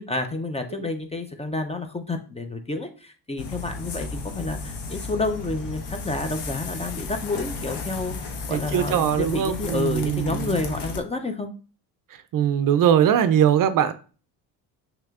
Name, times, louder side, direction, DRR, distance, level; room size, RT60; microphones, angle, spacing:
voice 1, 0.0-11.5, left 3 dB, 15° left, 6 dB, 0.5 m, -29 dB
sound 1, 3.4-11.0, left 4 dB, 65° left, 1.0 m, -34 dB
voice 2, 8.5-10.5 12.1-13.9, right 9 dB, 50° right, 11 dB, 0.5 m, -21 dB
6.0 x 3.0 x 2.4 m, 0.37 s
cardioid pair, 95°, 43 cm